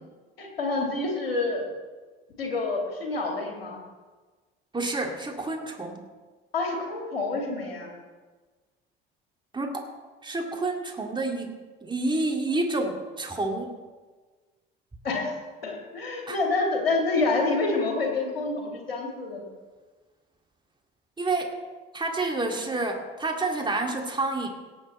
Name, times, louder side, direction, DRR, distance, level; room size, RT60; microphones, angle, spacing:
voice 1, 0.4-1.6 2.4-3.8 6.5-7.9 15.0-19.4, left 3 dB, 80° left, 1 dB, 2.4 m, -28 dB
voice 2, 4.7-6.1 9.5-9.8 10.2-13.7 16.3-16.4 21.2-21.5 21.9-24.5, right 2 dB, 15° right, 2 dB, 2.3 m, -29 dB
18.0 x 8.0 x 4.4 m, 1.3 s
figure-of-eight pair, 55°, 29 cm